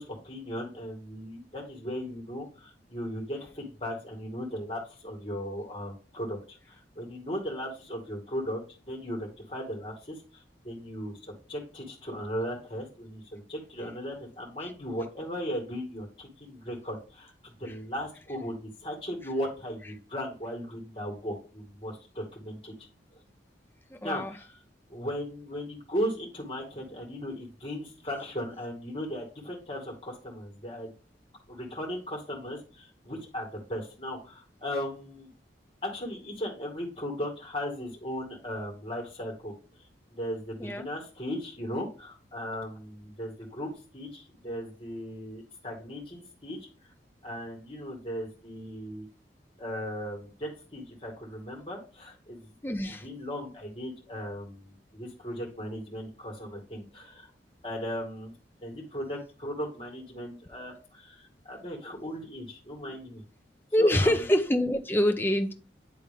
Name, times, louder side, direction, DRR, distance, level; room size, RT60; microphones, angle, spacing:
voice 1, 0.0-22.7 23.1-23.2 24.0-24.6 24.9-30.9 31.5-35.3 35.8-39.5 40.1-46.6 47.2-49.0 49.6-52.5 53.0-57.3 57.6-58.3 58.6-63.2 63.8-64.2, equal, 30° left, 0 dB, 2.2 m, -37 dB
voice 2, 24.0-24.4 40.6-40.9 52.6-53.0 63.7-65.5, left 1 dB, 10° left, 5 dB, 0.6 m, -25 dB
9.9 x 3.5 x 3.5 m, 0.36 s
head